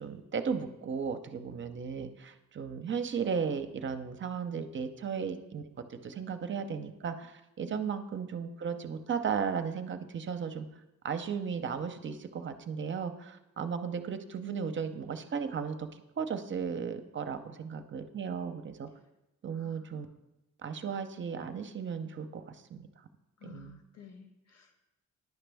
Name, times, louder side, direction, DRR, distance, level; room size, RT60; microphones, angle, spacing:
voice 1, 0.0-5.6 5.9-10.7 11.0-15.9 16.2-18.9 19.4-20.1 20.6-22.9 23.4-23.8, right 6 dB, 40° right, 8 dB, 0.6 m, -35 dB
voice 2, 7.6-7.9 19.5-20.0 23.4-24.9, left 9 dB, 60° left, 5 dB, 1.3 m, -53 dB
10.5 x 5.0 x 3.4 m, 0.94 s
cardioid pair, 90°, 30 cm